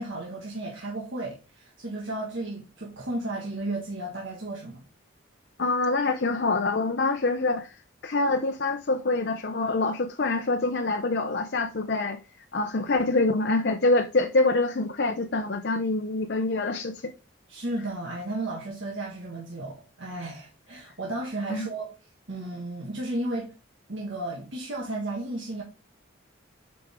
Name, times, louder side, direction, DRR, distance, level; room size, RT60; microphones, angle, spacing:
voice 1, 0.0-4.8 17.5-21.9 22.3-23.5 23.9-25.6, right 2 dB, 65° right, 1.6 m, -34 dB
voice 2, 5.6-7.7 8.0-12.2 12.5-17.1 21.5-21.7, left 2 dB, 55° left, 0.6 m, -25 dB
8.0 x 5.2 x 3.6 m
head